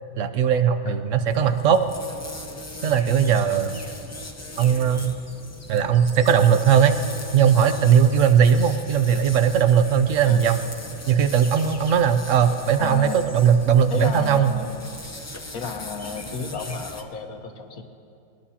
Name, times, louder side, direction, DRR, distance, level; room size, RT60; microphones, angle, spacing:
voice 1, 0.2-1.8 2.8-3.8 4.6-5.1 5.7-7.0 7.3-10.6 11.1-14.5, right 8 dB, 65° right, 9 dB, 1.0 m, -19 dB
sound 1, 1.3-17.0, left 2 dB, 20° left, 0.5 m, -39 dB
voice 2, 12.8-13.2 13.9-14.7 15.5-17.8, left 5 dB, 80° left, 4 dB, 1.7 m, -32 dB
21.5 x 19.5 x 2.8 m, 2.6 s
omnidirectional pair, 1.5 m